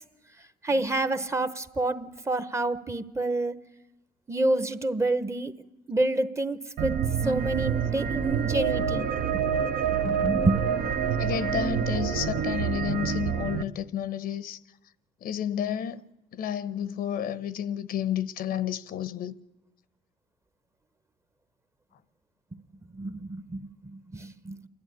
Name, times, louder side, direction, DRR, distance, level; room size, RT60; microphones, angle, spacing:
voice 1, 0.6-3.6 4.3-5.5 5.9-9.1 9.3-9.4 10.0-10.6 22.9-24.6, right 2 dB, 15° right, 0.9 m, -28 dB
sound 1, 6.8-13.6, right 7 dB, 65° right, 1.0 m, -27 dB
voice 2, 11.2-14.6 15.2-16.0 16.3-19.4, left 9 dB, 60° left, 0.8 m, -31 dB
28.5 x 11.5 x 9.7 m
cardioid pair, 110°, 17 cm